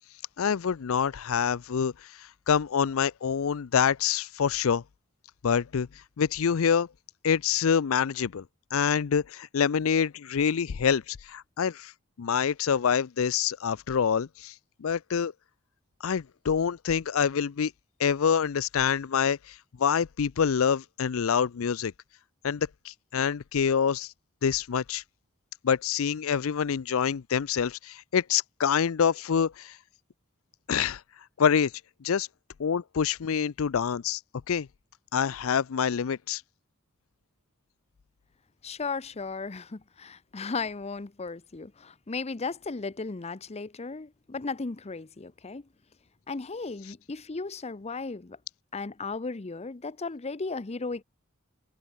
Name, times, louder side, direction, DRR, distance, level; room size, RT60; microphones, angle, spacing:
voice 1, 0.4-4.8 5.4-5.9 6.2-6.9 7.2-8.4 8.7-11.9 12.2-14.5 14.8-15.3 16.0-17.7 18.0-21.9 22.4-24.1 24.4-25.0 25.6-29.8 30.7-31.0 31.4-31.7 32.0-32.3 32.6-34.2 34.5-34.7 35.1-36.4, left 7 dB, 75° left, 0.5 m, -26 dB
voice 2, 38.6-45.6 46.3-48.4 48.7-51.0, left 4 dB, 30° left, 0.7 m, -35 dB
head